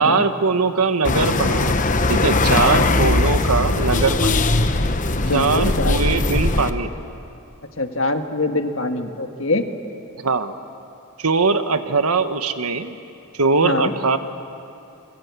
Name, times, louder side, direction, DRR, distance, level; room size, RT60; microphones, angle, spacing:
voice 1, 0.0-1.8 2.1-4.4 5.3-6.9 10.2-10.5 11.2-12.9 13.3-14.2, right 4 dB, 85° right, 9 dB, 1.3 m, -21 dB
sound 1, 1.0-6.7, left 2 dB, 35° left, 1.0 m, -20 dB
voice 2, 5.2-6.0 7.8-9.7 13.6-13.9, left 2 dB, 60° left, 6 dB, 1.6 m, -24 dB
26.5 x 23.0 x 8.3 m, 2.7 s
head